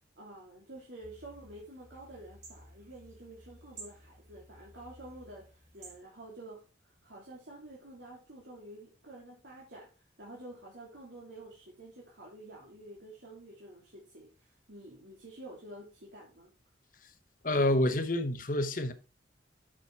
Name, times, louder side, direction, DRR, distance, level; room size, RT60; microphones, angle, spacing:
voice 1, 0.2-16.5, right 1 dB, 85° right, 2.8 m, -49 dB
sound 1, 1.0-6.0, right 2 dB, 45° right, 3.8 m, -54 dB
voice 2, 17.4-18.9, left 1 dB, 50° left, 1.1 m, -28 dB
8.6 x 6.0 x 4.5 m
head